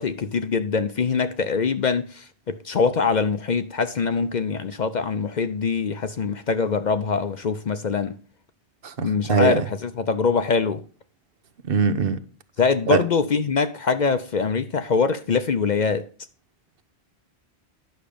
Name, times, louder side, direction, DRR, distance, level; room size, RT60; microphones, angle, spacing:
voice 1, 0.0-8.2 9.0-10.8 12.6-16.1, left 5 dB, 50° left, 0.7 m, -23 dB
voice 2, 8.8-9.6 11.6-12.2 12.9-13.0, right 5 dB, 60° right, 1.0 m, -22 dB
10.5 x 6.3 x 5.0 m
omnidirectional pair, 1.1 m